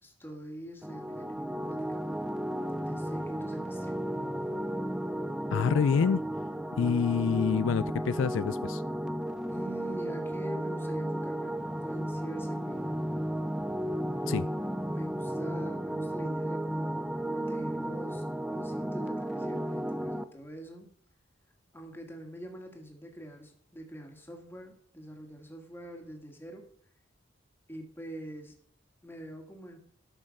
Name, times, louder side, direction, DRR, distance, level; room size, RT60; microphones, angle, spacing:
voice 1, 0.0-2.1 2.8-3.9 9.5-12.9 14.9-20.9 21.7-26.7 27.7-28.6 29.0-29.8, right 1 dB, 10° left, 2.0 m, -45 dB
sound 1, 0.8-20.2, right 1 dB, 5° right, 0.4 m, -34 dB
voice 2, 5.5-6.2 6.8-8.8 14.3-14.5, left 6 dB, 75° left, 0.3 m, -27 dB
12.5 x 6.3 x 6.5 m
head